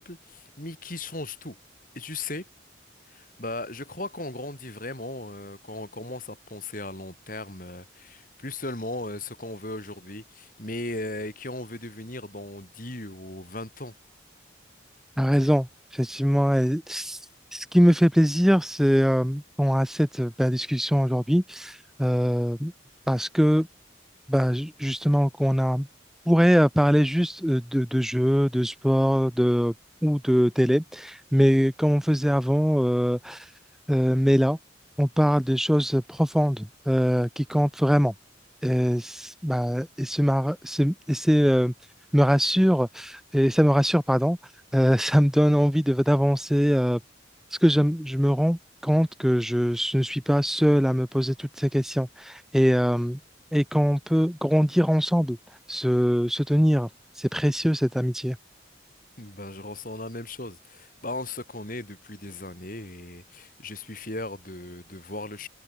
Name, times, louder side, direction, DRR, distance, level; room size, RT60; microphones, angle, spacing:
voice 1, 0.0-1.6 1.9-2.5 3.1-13.9 59.2-65.5, left 2 dB, 45° left, 7.0 m, -37 dB
voice 2, 15.2-17.2 17.5-22.7 23.1-23.7 24.3-25.9 26.3-29.7 30.0-33.5 33.9-34.6 35.0-38.1 38.6-41.7 42.1-44.4 44.7-47.0 47.6-53.2 53.5-55.4 55.7-56.9 57.2-58.4, equal, ahead, 2.7 m, -22 dB
head